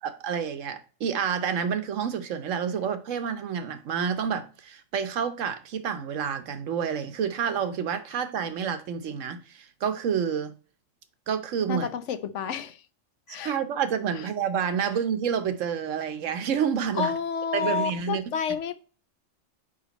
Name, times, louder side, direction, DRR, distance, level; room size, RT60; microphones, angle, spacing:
voice 1, 0.0-10.5 11.3-11.9 13.4-17.1 17.5-18.2, right 7 dB, 80° right, 1.2 m, -29 dB
voice 2, 11.7-12.8 13.3-13.6 14.1-14.3 14.8-14.9 16.9-18.7, left 7 dB, 70° left, 1.0 m, -30 dB
5.1 x 5.0 x 4.0 m
omnidirectional pair, 1.3 m